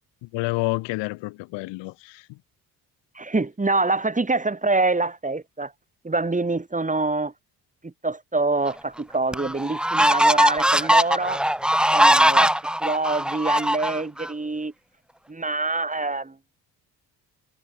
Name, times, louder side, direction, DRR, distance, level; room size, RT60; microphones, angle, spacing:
voice 1, 0.2-2.4, left 21 dB, 85° left, 1.1 m, -29 dB
voice 2, 3.2-5.7 6.0-7.3 7.8-11.4 11.9-12.5 12.8-14.7 15.3-16.4, right 3 dB, 20° right, 2.4 m, -25 dB
sound 1, 8.7-8.8 9.3-14.3, right 1 dB, ahead, 0.8 m, -20 dB
supercardioid pair, 65°, 42 cm